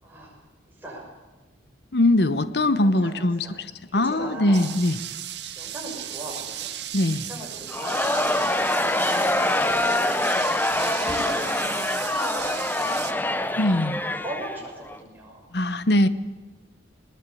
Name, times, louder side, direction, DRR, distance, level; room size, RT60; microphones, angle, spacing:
voice 1, 0.0-0.4 0.8-1.1 2.8-3.6 3.9-4.6 5.6-6.7 7.1-10.4 10.9-13.5 14.2-15.5, right 1 dB, 10° right, -3 dB, 6.7 m, -39 dB
voice 2, 1.9-3.7 3.9-5.0 6.9-7.2 13.6-14.0 15.5-16.1, left 1 dB, 60° left, 14 dB, 1.1 m, -21 dB
sound 1, 4.5-13.1, right 11 dB, 65° right, 1.8 m, -36 dB
Crowd, 7.7-15.0, left 1 dB, 10° left, 0.9 m, -25 dB
20.5 x 19.5 x 8.6 m, 1.2 s
head